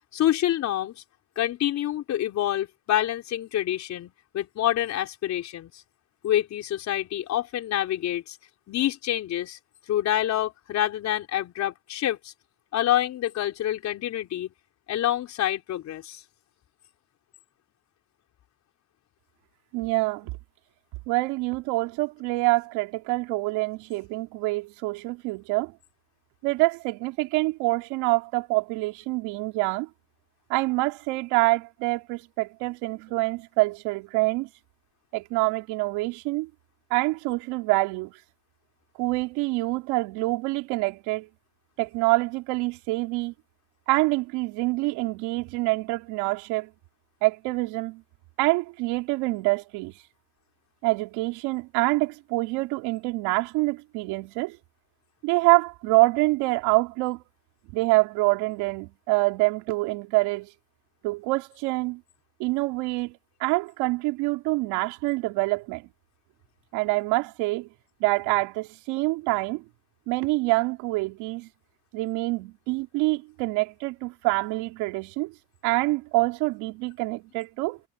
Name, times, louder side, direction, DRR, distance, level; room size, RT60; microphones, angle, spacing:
voice 1, 0.1-1.0 1.4-5.8 6.2-8.4 8.7-9.6 9.9-12.3 12.7-14.5 14.9-16.2, left 12 dB, 40° left, 4.5 m, -27 dB
voice 2, 19.7-20.3 21.1-25.7 26.4-29.9 30.5-34.5 35.1-36.5 36.9-38.1 39.0-41.3 41.8-43.3 43.9-46.7 47.2-48.0 48.4-49.9 50.8-54.6 55.2-57.2 57.7-60.5 61.0-62.0 62.4-65.9 66.7-67.7 68.0-69.6 70.1-71.5 71.9-75.3 75.6-77.8, right 23 dB, 75° right, 3.2 m, -26 dB
cardioid pair, 155°, 40 cm